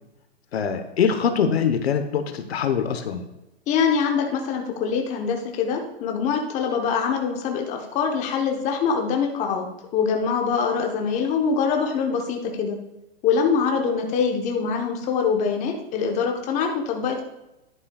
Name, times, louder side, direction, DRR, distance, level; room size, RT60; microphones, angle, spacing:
voice 1, 0.5-3.3, left 7 dB, 70° left, 8 dB, 1.1 m, -23 dB
voice 2, 3.7-9.7 9.9-12.8 13.2-17.2, left 6 dB, 20° left, 2 dB, 1.0 m, -24 dB
10.5 x 9.7 x 2.4 m, 0.93 s
hypercardioid pair, 145°, 32 cm